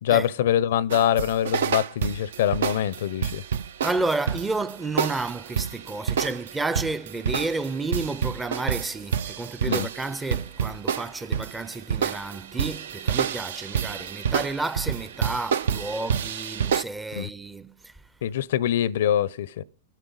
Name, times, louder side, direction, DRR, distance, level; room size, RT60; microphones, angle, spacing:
voice 1, 0.0-3.4 9.7-9.9 17.1-17.3 18.2-19.6, left 10 dB, 65° left, 0.5 m, -24 dB
sound 1, 0.9-16.8, right 7 dB, 70° right, 0.5 m, -28 dB
voice 2, 3.8-17.9, right 3 dB, 10° right, 0.5 m, -31 dB
21.5 x 9.0 x 3.8 m
hypercardioid pair, 110°, 0 cm